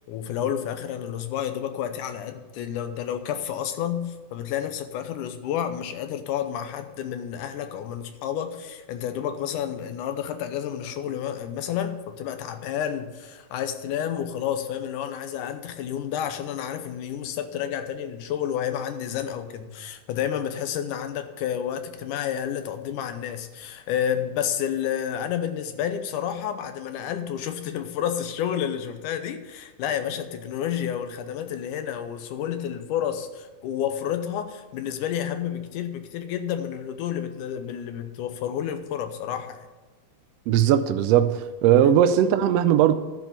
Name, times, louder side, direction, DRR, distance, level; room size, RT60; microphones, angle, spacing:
voice 1, 0.1-39.7 41.8-41.9, left 9 dB, 85° left, 2.3 m, -30 dB
voice 2, 40.5-42.9, right 10 dB, 80° right, 1.4 m, -19 dB
11.5 x 4.6 x 8.3 m
omnidirectional pair, 3.6 m